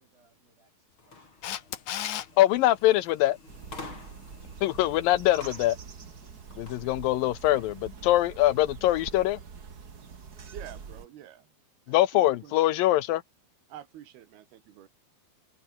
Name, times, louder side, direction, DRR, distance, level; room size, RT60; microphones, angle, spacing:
voice 1, 0.0-2.4, right 3 dB, 65° right, 9.5 m, -69 dB
sound 1, 1.0-6.8, left 3 dB, 30° left, 6.1 m, -49 dB
Camera, 1.4-2.3 9.0-9.1, left 11 dB, 60° left, 2.5 m, -33 dB
voice 2, 2.4-3.4 4.6-5.8 6.6-9.4 11.9-13.2, left 15 dB, 75° left, 2.3 m, -23 dB
sound 2, 3.5-11.1, right 6 dB, 35° right, 1.6 m, -45 dB
voice 3, 10.5-11.5 11.9-12.5 13.7-14.9, right 11 dB, 85° right, 3.7 m, -47 dB
omnidirectional pair, 4.4 m